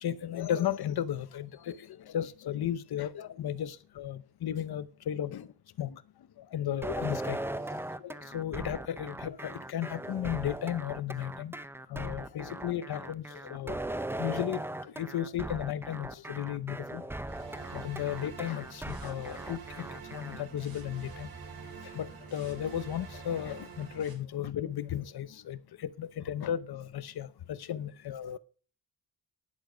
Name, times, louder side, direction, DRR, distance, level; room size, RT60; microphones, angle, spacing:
voice 1, 0.0-5.5 5.8-6.0 6.5-7.4 7.7-11.5 11.9-13.8 14.2-17.1 17.7-19.9 20.1-21.3 21.9-28.4, left 10 dB, 65° left, 0.9 m, -35 dB
sound 1, 6.8-20.4, right 1 dB, 5° right, 0.5 m, -39 dB
sound 2, 17.3-24.1, right 5 dB, 55° right, 4.1 m, -46 dB
11.5 x 10.5 x 5.1 m
wide cardioid pair, 180°, 42 cm